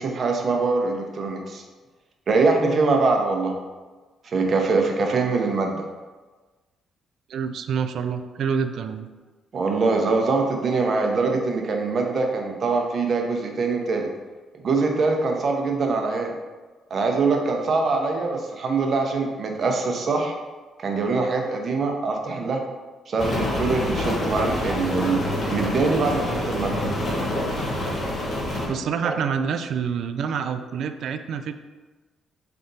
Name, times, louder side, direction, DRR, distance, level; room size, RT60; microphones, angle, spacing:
voice 1, 0.0-1.6 2.3-3.5 4.2-5.8 9.5-14.1 14.6-16.3 16.9-20.3 20.8-22.6 23.1-26.8 29.0-29.2, right 3 dB, 50° right, 2 dB, 0.7 m, -23 dB
voice 2, 7.3-9.1 28.7-31.5, right 6 dB, 70° right, 9 dB, 0.3 m, -27 dB
Rain, 23.2-28.7, left 1 dB, 50° left, 1.3 m, -26 dB
3.9 x 3.4 x 3.9 m, 1.3 s
cardioid pair, 90°, 0 cm